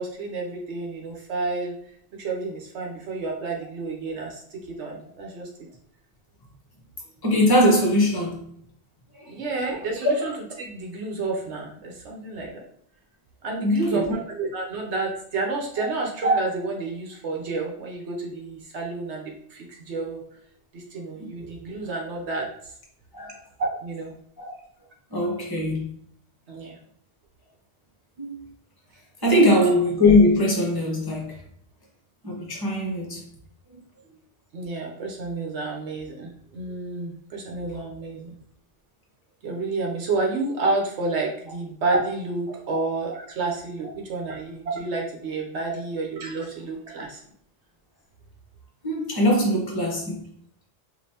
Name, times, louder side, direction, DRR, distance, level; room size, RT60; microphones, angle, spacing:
voice 1, 0.0-1.7 2.2-5.5 9.3-10.3 10.6-12.6 13.4-20.2 20.7-22.7 23.6-24.1 26.5-26.8 34.5-38.4 39.4-47.2, right 3 dB, 75° right, 0 dB, 1.1 m, -30 dB
voice 2, 7.2-8.6 9.1-9.3 13.6-14.1 21.2-21.3 23.1-23.4 24.4-24.5 25.1-25.8 28.2-28.4 29.2-31.4 32.2-33.3 42.7-42.8 45.7-45.8 48.8-50.3, left 1 dB, 20° left, -1 dB, 1.1 m, -21 dB
5.2 x 2.6 x 2.8 m, 0.64 s
omnidirectional pair, 1.2 m